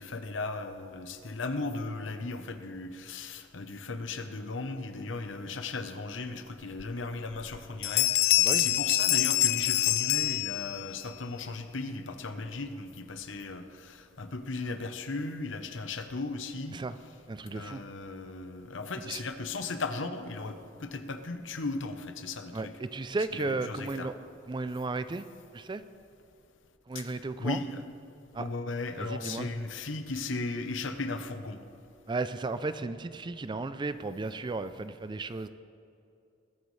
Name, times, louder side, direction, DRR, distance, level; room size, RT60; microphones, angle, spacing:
voice 1, 0.0-16.8 17.5-22.7 23.3-24.1 26.9-27.8 28.4-31.6, left 3 dB, 75° left, 8 dB, 0.9 m, -36 dB
sound 1, 6.8-6.9 7.3-7.6 7.8-11.0, left 16 dB, 55° left, 0.3 m, -26 dB
voice 2, 17.3-17.8 19.1-19.2 22.5-24.1 24.5-25.3 25.5-25.8 26.9-27.6 28.3-28.5 29.0-29.5 32.1-35.5, right 3 dB, 25° right, 12 dB, 0.4 m, -34 dB
20.5 x 9.3 x 3.2 m, 2.6 s
head